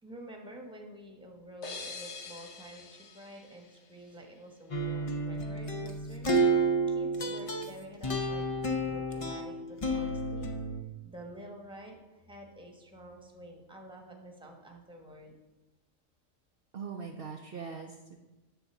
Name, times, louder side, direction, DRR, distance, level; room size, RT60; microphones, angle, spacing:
voice 1, 0.0-10.5 11.0-15.3, right 1 dB, 5° right, 1 dB, 1.1 m, -49 dB
sound 1, 1.6-4.4, left 4 dB, 60° left, 1.2 m, -46 dB
sound 2, 4.7-10.8, right 2 dB, 30° left, 0.7 m, -30 dB
voice 2, 16.7-18.2, right 5 dB, 55° right, 2 dB, 0.8 m, -41 dB
10.0 x 4.0 x 7.0 m, 1.1 s
omnidirectional pair, 1.4 m